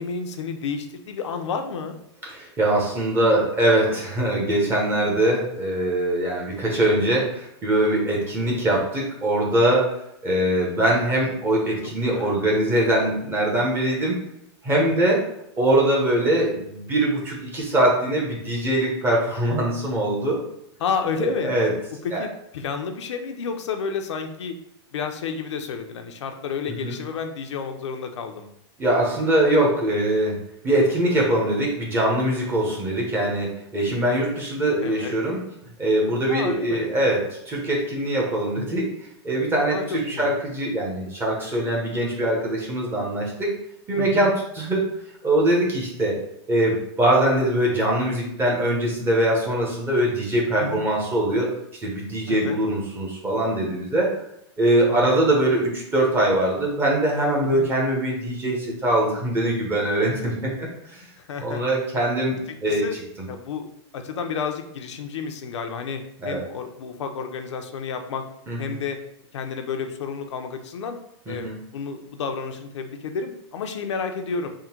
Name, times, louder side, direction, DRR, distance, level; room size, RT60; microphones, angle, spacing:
voice 1, 0.0-2.0 11.8-12.3 14.8-15.1 20.8-21.6 22.0-24.5 24.9-28.5 34.8-35.1 36.3-36.9 39.7-40.3 44.0-44.3 50.6-50.8 52.3-52.6 54.9-55.2 57.4-57.6 61.2-61.6 62.7-63.0 63.3-63.7 63.9-68.2 68.6-69.0 69.3-71.0 71.3-74.5, left 5 dB, 90° left, 5 dB, 0.6 m, -31 dB
voice 2, 2.3-10.0 10.2-14.2 14.6-15.2 15.6-20.4 21.2-21.7 22.1-22.2 26.7-26.9 28.8-30.4 30.6-35.4 35.8-38.9 39.2-43.5 43.9-44.8 45.2-46.2 46.5-51.5 51.8-54.1 54.6-61.0 61.4-62.8 66.2-66.4 68.5-68.6 71.3-71.5, right 1 dB, 15° right, -3 dB, 0.9 m, -22 dB
3.7 x 2.2 x 4.4 m, 0.77 s
supercardioid pair, 155°, 15 cm